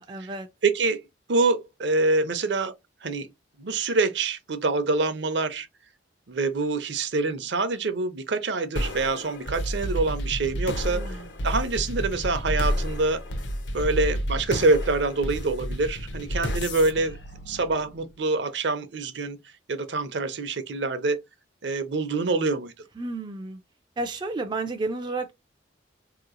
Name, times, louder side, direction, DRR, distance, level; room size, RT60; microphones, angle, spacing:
voice 1, 0.0-0.5 10.9-11.3 23.0-23.6 24.0-25.3, right 2 dB, 25° right, 0.3 m, -32 dB
voice 2, 0.6-2.7 3.0-3.3 3.6-5.7 6.3-11.0 11.4-13.2 13.7-17.2 17.5-19.4 19.7-21.2 21.6-22.7, right 3 dB, 65° right, 0.6 m, -25 dB
sound 1, 8.8-18.2, equal, 65° left, 0.7 m, -31 dB
4.1 x 2.9 x 2.5 m
head